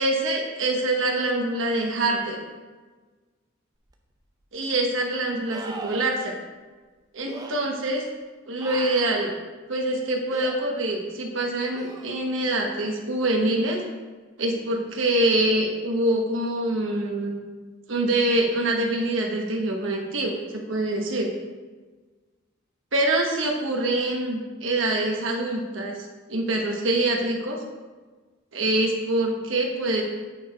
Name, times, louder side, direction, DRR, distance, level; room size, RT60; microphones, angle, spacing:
voice 1, 0.0-2.4 4.5-6.3 7.1-8.0 8.5-9.3 9.7-13.8 14.4-17.4 17.9-21.3 22.9-26.0 26.3-27.6 28.5-30.0, right 1 dB, 75° right, 0 dB, 1.1 m, -25 dB
sound 1, 3.9-4.0 5.5-6.2 7.3-7.5 8.6-9.3 10.3-10.6 11.7-12.4 15.6-15.7, right 3 dB, 20° right, 0.6 m, -38 dB
8.7 x 4.7 x 4.7 m, 1.4 s
head